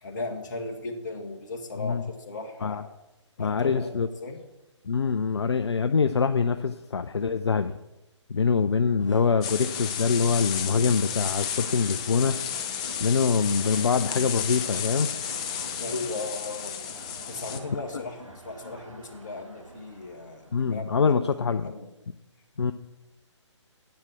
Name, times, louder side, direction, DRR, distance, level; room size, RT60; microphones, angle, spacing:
voice 1, 0.0-2.0 2.2-2.9 3.4-4.4 15.8-21.9, left 3 dB, 40° left, 3 dB, 1.7 m, -37 dB
voice 2, 3.4-4.1 4.9-7.7 8.3-12.4 13.0-15.1 17.9-18.0 20.5-21.7 22.6-22.7, left 5 dB, 60° left, 10 dB, 0.5 m, -24 dB
sound 1, 9.0-20.8, right 2 dB, 80° right, 1.6 m, -47 dB
sound 2, 9.4-17.6, left 8 dB, 15° left, 0.4 m, -32 dB
10.5 x 7.8 x 6.3 m, 0.95 s
figure-of-eight pair, 140°, 16 cm